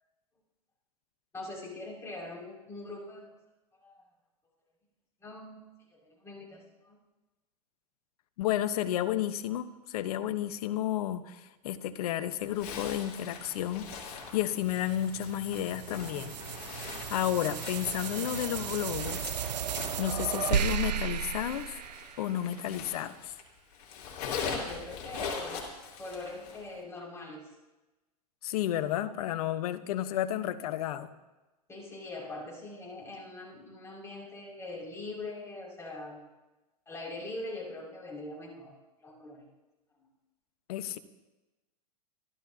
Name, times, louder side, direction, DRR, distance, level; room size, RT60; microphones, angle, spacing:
voice 1, 1.3-3.3 3.8-4.0 5.2-5.6 5.9-7.0 24.4-25.7 25.9-27.5 31.7-36.2 36.9-38.7 39.0-39.5 40.0-40.1, left 2 dB, 15° left, 5.9 m, -42 dB
voice 2, 8.4-16.4 16.7-21.8 22.2-23.3 28.4-31.1 40.7-41.0, left 12 dB, 65° left, 1.1 m, -32 dB
Zipper (clothing), 12.5-23.4 23.7-26.7, left 5 dB, 50° left, 4.6 m, -42 dB
sound 1, 14.1-22.7, right 9 dB, 90° right, 0.7 m, -35 dB
28.0 x 13.5 x 2.9 m
hypercardioid pair, 115°, 21 cm